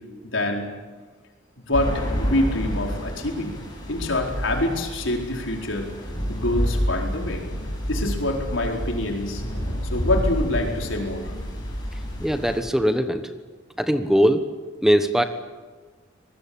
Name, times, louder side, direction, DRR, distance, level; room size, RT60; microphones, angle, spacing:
voice 1, 0.2-0.7 1.6-3.5 3.9-5.9 6.3-7.4 7.9-9.4 9.9-11.3, left 1 dB, 85° left, 1 dB, 4.6 m, -26 dB
sound 1, 1.7-12.6, equal, 25° left, 7.7 m, -29 dB
voice 2, 12.2-13.2 13.8-14.5 14.8-15.2, equal, ahead, 8 dB, 1.2 m, -20 dB
25.5 x 20.0 x 8.8 m, 1.4 s
head